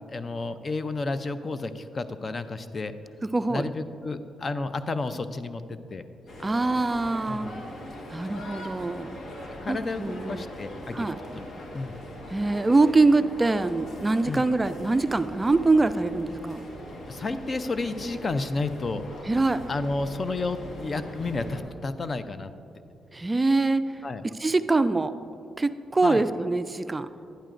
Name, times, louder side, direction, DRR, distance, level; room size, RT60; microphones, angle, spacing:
voice 1, 0.1-2.9 3.5-6.1 7.3-7.5 9.6-11.5 11.7-12.0 14.2-14.5 17.1-19.0 19.7-22.5 24.0-24.2 26.0-26.2, left 3 dB, 40° left, 11 dB, 0.4 m, -31 dB
voice 2, 3.3-3.6 6.4-7.5 8.1-9.1 9.7-10.5 10.9-11.2 12.3-16.6 19.3-19.6 23.1-25.1 25.6-27.1, right 3 dB, 25° right, 12 dB, 0.3 m, -24 dB
sound 1, 6.3-21.6, left 1 dB, 60° left, 1.3 m, -41 dB
11.0 x 10.0 x 2.5 m, 2.6 s
supercardioid pair, 65°, 0 cm